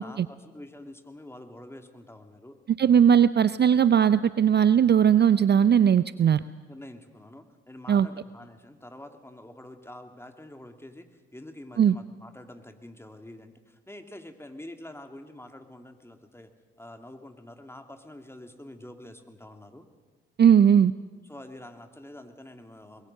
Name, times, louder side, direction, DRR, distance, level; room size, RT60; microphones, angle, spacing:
voice 1, 0.0-2.6 6.7-16.5 16.8-19.9 21.2-23.1, left 1 dB, 10° left, 6 dB, 2.7 m, -46 dB
voice 2, 2.8-6.4 7.9-8.1 11.8-12.0 20.4-20.9, right 8 dB, 35° right, 16 dB, 0.6 m, -19 dB
24.0 x 21.0 x 6.6 m, 1.3 s
hypercardioid pair, 45°, 29 cm